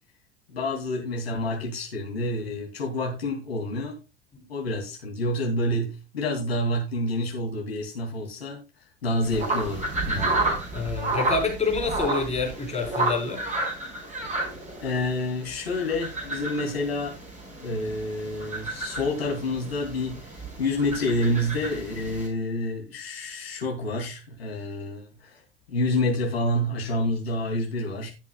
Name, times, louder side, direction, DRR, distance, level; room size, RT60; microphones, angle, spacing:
voice 1, 0.5-4.0 4.5-8.6 9.0-10.3 14.8-17.2 17.6-25.4 25.7-28.1, left 1 dB, 75° left, 2.6 m, -28 dB
sound 1, 9.2-22.3, right 2 dB, 25° right, 4.9 m, -31 dB
voice 2, 10.7-13.4, left 4 dB, 20° left, 4.0 m, -27 dB
17.5 x 6.0 x 2.3 m
figure-of-eight pair, 70°, 31 cm